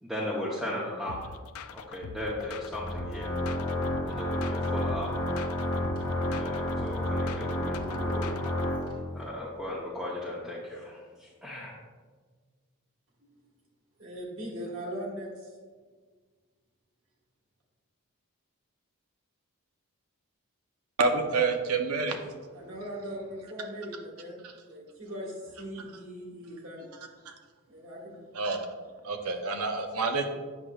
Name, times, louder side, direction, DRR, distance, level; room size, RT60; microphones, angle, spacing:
voice 1, 0.0-1.3 1.7-3.3 4.0-5.1 6.3-8.4 9.1-11.7, left 1 dB, ahead, -7 dB, 0.7 m, -37 dB
sound 1, 1.1-8.7, left 6 dB, 75° left, 0.3 m, -43 dB
Organ, 2.6-9.3, left 1 dB, 20° left, 1.2 m, -31 dB
voice 2, 14.0-15.6 22.5-26.9 27.7-28.2, equal, 65° right, -2 dB, 1.5 m, -40 dB
voice 3, 21.0-22.2 28.3-28.7 29.0-30.3, right 4 dB, 85° right, 5 dB, 0.7 m, -27 dB
8.2 x 6.2 x 2.3 m, 1.5 s
head